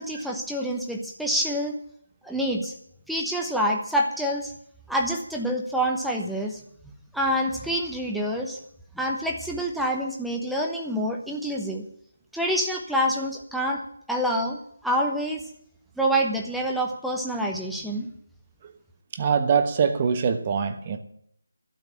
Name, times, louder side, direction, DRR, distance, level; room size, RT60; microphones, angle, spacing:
voice 1, 0.0-1.8 2.2-2.7 3.1-4.5 4.9-6.6 7.1-8.6 8.9-11.8 12.3-13.8 14.1-15.4 16.0-18.1, equal, ahead, 0 dB, 1.0 m, -27 dB
voice 2, 19.1-21.0, right 6 dB, 25° right, 8 dB, 1.1 m, -23 dB
12.0 x 7.0 x 9.8 m, 0.68 s
figure-of-eight pair, 155°, 0 cm